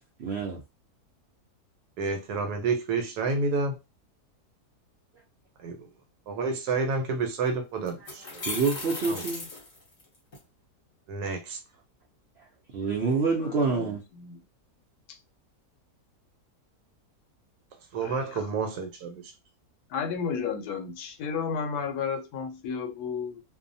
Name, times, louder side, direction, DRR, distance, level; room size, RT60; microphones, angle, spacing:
voice 1, 0.2-0.6 8.5-9.5 12.7-14.0, right 4 dB, 65° right, 0.6 m, -27 dB
voice 2, 2.0-3.8 5.6-5.9 6.3-8.4 9.1-9.2 11.1-11.6 17.9-19.3, right 4 dB, 80° right, 1.2 m, -29 dB
sound 1, 7.2-7.3 7.9-10.4, left 2 dB, 40° left, 0.8 m, -37 dB
voice 3, 13.4-14.4 15.1-15.2 18.0-18.4 19.9-23.4, left 6 dB, 75° left, 1.1 m, -33 dB
2.7 x 2.1 x 2.6 m
omnidirectional pair, 1.7 m